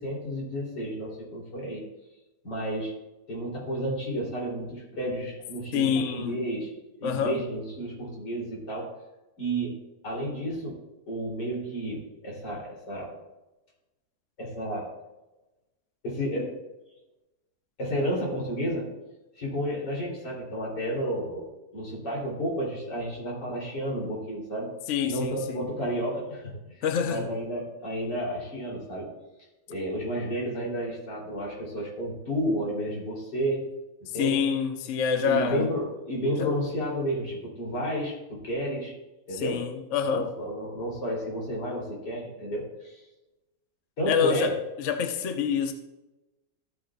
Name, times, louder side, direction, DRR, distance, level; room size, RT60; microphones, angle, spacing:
voice 1, 0.0-1.8 2.4-2.9 3.3-6.7 7.0-8.9 9.4-10.8 11.1-13.1 14.4-14.9 16.0-16.5 17.8-18.9 19.4-24.7 25.1-26.8 27.1-29.1 29.7-33.7 34.0-34.4 35.2-38.9 39.3-39.7 40.0-43.0 44.0-44.5, equal, 80° left, 4.1 m, -31 dB
voice 2, 5.7-6.4 7.0-7.4 24.9-25.7 26.8-27.3 34.1-35.7 36.4-36.5 39.3-40.3 44.0-44.5 44.8-45.7, left 7 dB, 55° left, 0.9 m, -27 dB
14.0 x 8.6 x 2.5 m
omnidirectional pair, 1.8 m